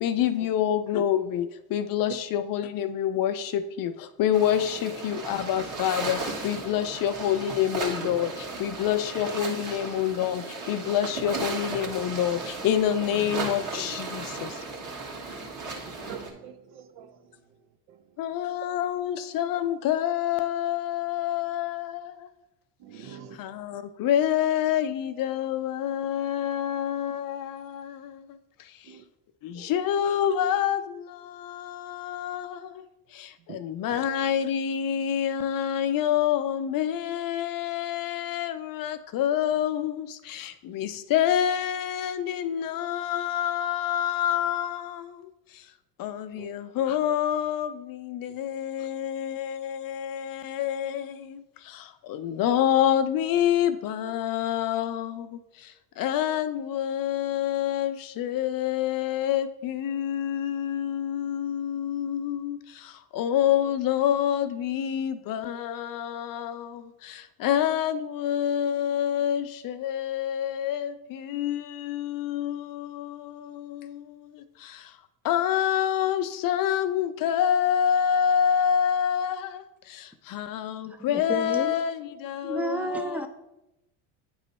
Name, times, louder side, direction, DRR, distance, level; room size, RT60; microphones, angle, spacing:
voice 1, 0.0-1.4 1.7-3.3 3.8-3.9 4.2-6.2 6.4-8.3 8.6-10.4 10.7-12.4 12.6-14.0 18.2-21.9 24.0-27.4 29.7-30.8 31.9-32.4 33.6-39.9 40.7-44.8 46.0-47.7 48.2-50.2 50.5-51.0 52.2-55.1 56.0-57.9 58.2-62.6 63.2-66.5 67.4-70.9 71.3-71.6 71.9-72.6 75.3-79.4 80.3-80.7 81.0-81.9 82.3-82.8, left 10 dB, 45° left, 10 dB, 0.5 m, -26 dB
sound 1, 4.3-16.3, right 3 dB, 40° right, 1.5 m, -35 dB
voice 2, 15.2-15.7 16.0-18.4 22.8-23.4 28.8-29.0 29.5-29.9 33.5-33.6 33.9-34.0 46.3-46.5 48.3-48.4, right 8 dB, 65° right, 8 dB, 0.8 m, -47 dB
voice 3, 81.1-81.8 82.4-83.3, right 1 dB, 5° right, 7 dB, 0.5 m, -31 dB
9.3 x 3.1 x 4.1 m, 0.92 s
supercardioid pair, 85°, 46 cm